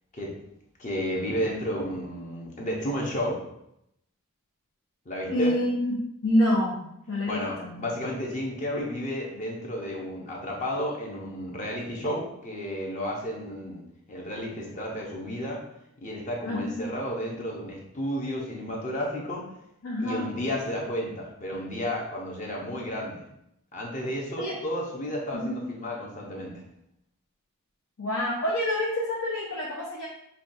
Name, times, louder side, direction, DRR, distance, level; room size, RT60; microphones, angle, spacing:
voice 1, 0.8-3.4 5.1-5.5 7.3-13.8 14.1-15.6 16.0-19.4 20.0-23.2 23.7-26.5, equal, 35° left, -2 dB, 0.8 m, -32 dB
voice 2, 5.3-5.9 6.2-6.8 7.1-7.8 16.4-16.9 19.8-20.3 24.4-24.5 25.3-25.6 28.0-30.1, left 1 dB, 65° left, -5 dB, 0.8 m, -27 dB
5.6 x 2.3 x 2.6 m, 0.77 s
head